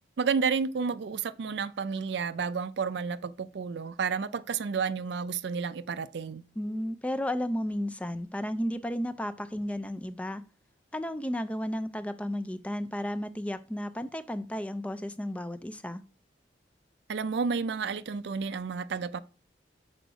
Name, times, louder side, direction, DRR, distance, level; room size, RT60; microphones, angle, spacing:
voice 1, 0.2-6.4 17.1-19.2, right 5 dB, 65° right, 0.4 m, -31 dB
voice 2, 6.6-10.4 10.9-16.0, equal, 5° left, 0.3 m, -33 dB
6.3 x 4.6 x 5.0 m
head